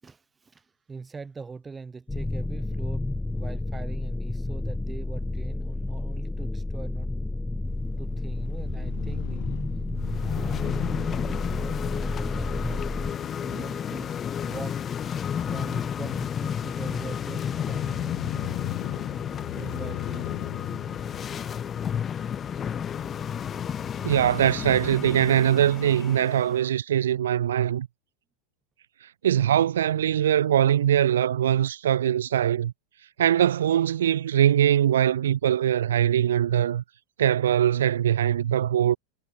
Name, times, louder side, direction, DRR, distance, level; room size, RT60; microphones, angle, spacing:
voice 1, 0.0-7.1 8.0-9.5 10.1-12.8 13.2-14.1 14.4-14.8 15.5-18.8 19.5-20.9 21.4-21.6, right 4 dB, 15° right, 7.1 m, -42 dB
sound 1, 2.1-13.1, left 2 dB, 5° left, 0.8 m, -30 dB
Crow / Motorcycle, 7.7-25.5, left 27 dB, 50° left, 3.7 m, -40 dB
sound 2, 10.0-26.6, left 8 dB, 25° left, 3.5 m, -32 dB
voice 2, 24.0-27.9 29.2-32.7 33.2-36.8 37.2-39.0, right 10 dB, 60° right, 0.6 m, -22 dB
figure-of-eight pair, 90°, 0 cm